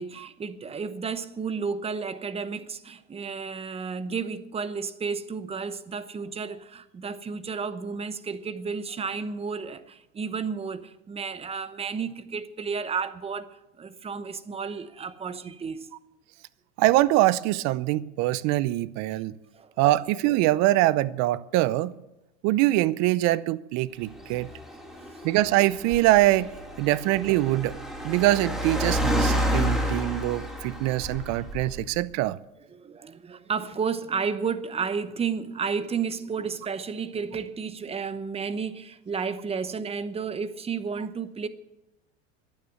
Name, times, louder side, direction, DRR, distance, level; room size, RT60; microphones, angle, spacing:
voice 1, 0.0-15.9 19.5-19.7 24.1-24.4 25.1-25.2 32.7-41.5, right 5 dB, 15° right, 0.9 m, -32 dB
voice 2, 16.8-19.3 19.8-21.9 22.4-24.5 25.2-26.5 26.8-27.8 28.0-32.4, right 16 dB, 50° right, 0.7 m, -23 dB
Car, 24.0-32.0, equal, ahead, 2.3 m, -30 dB
11.5 x 9.4 x 9.2 m
supercardioid pair, 115°, 34 cm